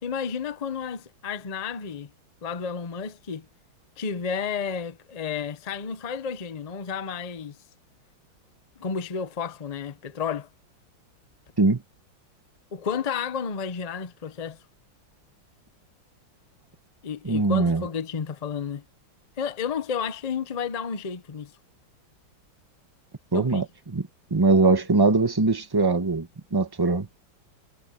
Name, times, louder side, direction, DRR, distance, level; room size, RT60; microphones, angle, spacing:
voice 1, 0.0-2.1 2.4-3.5 4.0-7.6 8.8-10.5 12.7-14.6 17.0-18.8 19.4-21.5 23.3-23.6, left 6 dB, 70° left, 0.3 m, -31 dB
voice 2, 17.2-17.8 23.3-27.1, right 3 dB, 15° right, 1.0 m, -22 dB
omnidirectional pair, 2.2 m